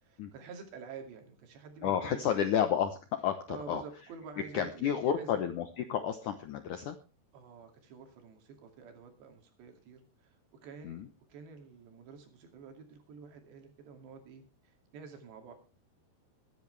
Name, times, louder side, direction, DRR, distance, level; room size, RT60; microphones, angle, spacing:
voice 1, 0.0-2.5 3.5-5.4 7.3-10.4 10.6-15.5, right 5 dB, 80° right, 4 dB, 4.7 m, -49 dB
voice 2, 1.8-3.8 4.5-7.0 10.8-11.1, left 9 dB, 75° left, 8 dB, 1.8 m, -31 dB
22.0 x 10.5 x 3.3 m, 0.32 s
omnidirectional pair, 4.9 m